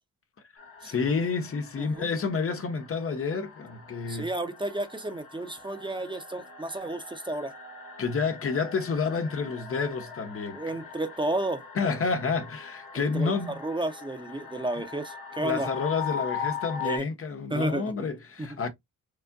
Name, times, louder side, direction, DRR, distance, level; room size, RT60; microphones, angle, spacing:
sound 1, 0.6-17.0, left 6 dB, 85° left, 1.7 m, -41 dB
voice 1, 0.8-4.3 8.0-10.6 11.8-13.6 15.4-18.7, left 5 dB, 45° left, 0.7 m, -29 dB
voice 2, 1.8-2.1 4.1-7.5 10.5-11.7 12.9-15.7 16.8-17.1 17.5-17.9 18.4-18.6, right 2 dB, 15° right, 0.8 m, -32 dB
4.6 x 2.5 x 2.6 m
cardioid pair, 80°, 32 cm